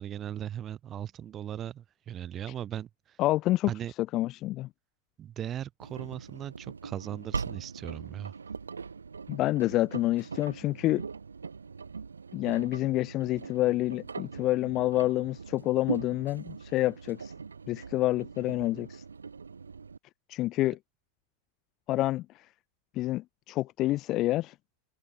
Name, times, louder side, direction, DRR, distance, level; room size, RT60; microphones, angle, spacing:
voice 1, 0.0-3.2 3.7-3.9 5.2-8.3, right 10 dB, 30° right, 2.5 m, -38 dB
voice 2, 3.2-3.7 4.0-4.7 9.3-11.0 12.3-17.3 17.7-19.0 20.3-20.8 21.9-22.5 22.9-24.5, left 16 dB, 35° left, 0.8 m, -28 dB
Engine, 5.8-20.0, right 5 dB, 75° right, 2.6 m, -41 dB
figure-of-eight pair, 90°, 0 cm